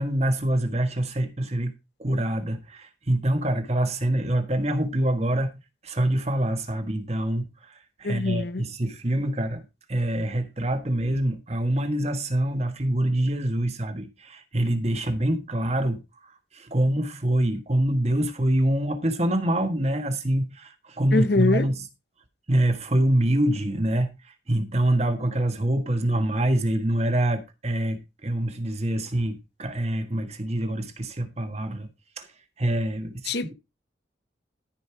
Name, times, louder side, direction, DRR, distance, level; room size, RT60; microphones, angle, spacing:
voice 1, 0.0-1.7 2.0-9.6 9.9-21.8 22.5-24.1 24.5-31.9 32.2-32.3 32.6-33.3, right 1 dB, 35° right, 1.5 m, -25 dB
voice 2, 8.0-8.6 21.1-21.7 33.3-33.5, left 3 dB, 60° left, 0.8 m, -24 dB
13.5 x 5.4 x 4.6 m
head